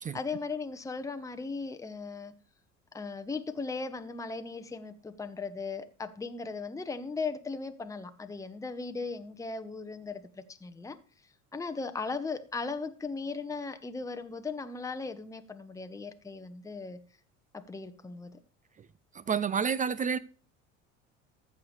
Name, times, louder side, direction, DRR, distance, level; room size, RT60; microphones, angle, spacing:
voice 1, 0.1-2.3 2.9-11.0 11.5-17.0 17.5-18.4, left 4 dB, 10° left, 0.9 m, -37 dB
voice 2, 19.1-20.2, right 6 dB, 20° right, 0.4 m, -29 dB
14.5 x 6.9 x 3.2 m
hypercardioid pair, 65°, 38 cm